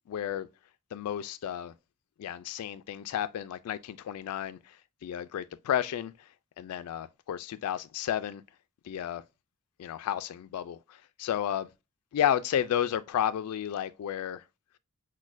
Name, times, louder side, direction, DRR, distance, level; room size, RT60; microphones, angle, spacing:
voice 1, 0.1-0.5 0.9-1.7 2.2-4.8 5.0-6.1 6.6-8.4 8.8-9.2 9.8-11.7 12.1-14.4, left 10 dB, 85° left, 0.3 m, -32 dB
6.1 x 2.1 x 2.5 m
head